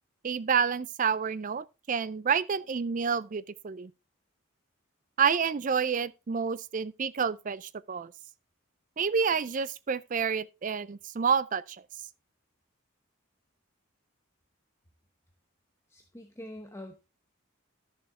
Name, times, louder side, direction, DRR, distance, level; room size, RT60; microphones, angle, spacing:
voice 1, 0.2-3.9 5.2-8.1 9.0-11.8, right 6 dB, 35° right, 0.4 m, -29 dB
voice 2, 15.9-17.1, left 1 dB, 10° left, 0.8 m, -45 dB
11.5 x 6.8 x 3.5 m
head